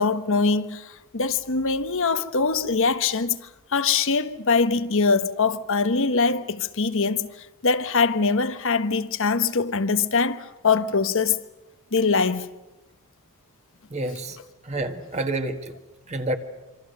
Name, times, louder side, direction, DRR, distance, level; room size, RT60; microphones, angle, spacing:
voice 1, 0.0-3.4 3.7-11.4 11.9-12.5, left 4 dB, 60° left, 1.2 m, -23 dB
voice 2, 13.9-14.4 14.7-15.7 16.1-16.4, right 2 dB, 30° right, 1.6 m, -28 dB
26.5 x 26.0 x 6.7 m
head